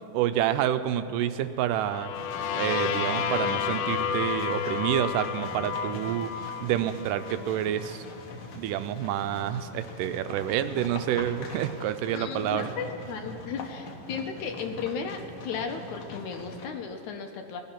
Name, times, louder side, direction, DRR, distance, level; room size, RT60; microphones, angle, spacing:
voice 1, 0.1-2.1 2.5-6.3 6.6-8.0 8.5-12.7, right 11 dB, 80° right, 11 dB, 2.2 m, -28 dB
sound 1, 1.7-7.6, left 7 dB, 90° left, 1.5 m, -31 dB
sound 2, 2.1-16.7, left 2 dB, 55° left, 1.7 m, -43 dB
voice 2, 12.1-17.6, left 6 dB, 70° left, 5 dB, 2.1 m, -35 dB
19.0 x 12.5 x 5.9 m, 2.6 s
omnidirectional pair, 3.9 m